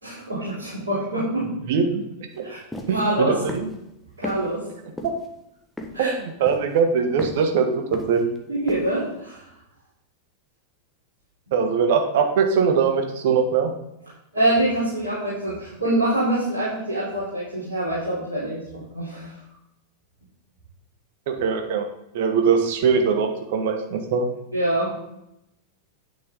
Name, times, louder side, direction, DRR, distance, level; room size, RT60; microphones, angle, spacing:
voice 1, 0.0-1.5 2.4-2.6 2.9-3.4 4.2-4.7 5.9-6.1 8.5-9.4 14.3-19.4 24.5-24.9, right 1 dB, 75° right, -9 dB, 3.9 m, -25 dB
voice 2, 1.7-2.0 2.4-2.5 2.9-3.7 5.0-5.1 6.0-8.3 11.5-13.7 21.3-21.9 22.1-24.3, right 6 dB, 55° right, 5 dB, 1.5 m, -21 dB
sound 1, 2.7-2.9 3.5-3.7 4.2-4.4 5.0-5.3 5.8-6.1 6.5-6.8 7.2-7.4 7.9-8.4 8.7-8.9, left 1 dB, 5° left, 1.5 m, -33 dB
9.8 x 9.2 x 3.9 m, 0.83 s
figure-of-eight pair, 90°, 0 cm